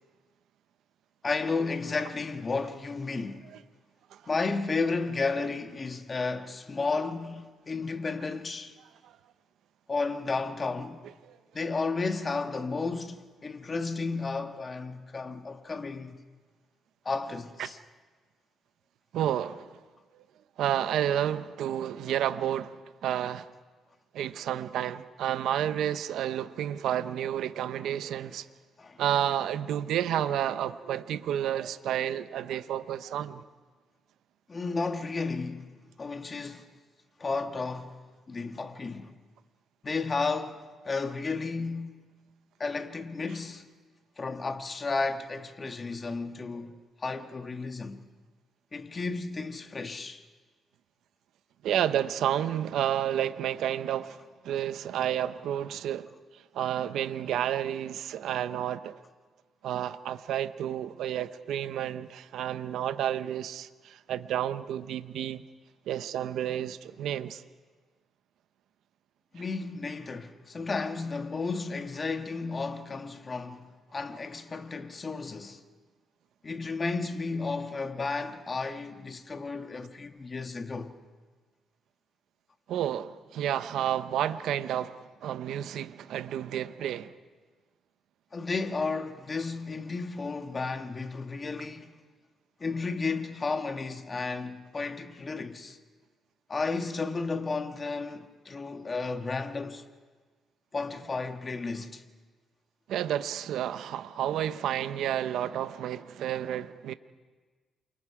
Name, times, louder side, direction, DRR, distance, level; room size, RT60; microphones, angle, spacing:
voice 1, 1.2-3.5 4.3-8.8 9.9-11.0 11.5-16.2 17.0-17.8 28.8-29.0 34.5-36.7 37.2-39.1 39.8-42.0 42.6-43.6 44.2-48.0 48.7-50.2 69.3-75.6 76.4-80.9 88.3-92.0 92.6-95.8 96.5-99.9 100.7-102.0, left 4 dB, 30° left, 1.6 m, -33 dB
voice 2, 19.1-19.8 20.1-20.2 20.6-23.5 24.1-28.5 29.0-33.4 51.6-59.0 59.6-65.4 65.9-67.4 82.7-87.1 102.9-106.9, right 10 dB, 80° right, 0.8 m, -31 dB
28.5 x 24.0 x 4.9 m
cardioid pair, 90°, 0 cm